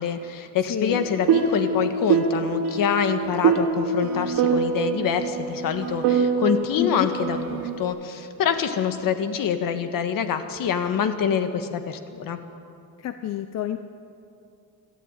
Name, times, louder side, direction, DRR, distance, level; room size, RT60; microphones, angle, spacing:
voice 1, 0.0-12.4, left 7 dB, 65° left, 8 dB, 1.7 m, -26 dB
voice 2, 0.7-1.0 6.8-7.1 13.0-13.8, left 11 dB, 45° left, 9 dB, 0.7 m, -28 dB
sound 1, 0.9-7.8, right 5 dB, 70° right, 3.1 m, -24 dB
25.5 x 13.0 x 9.1 m, 2.6 s
cardioid pair, 175°, 36 cm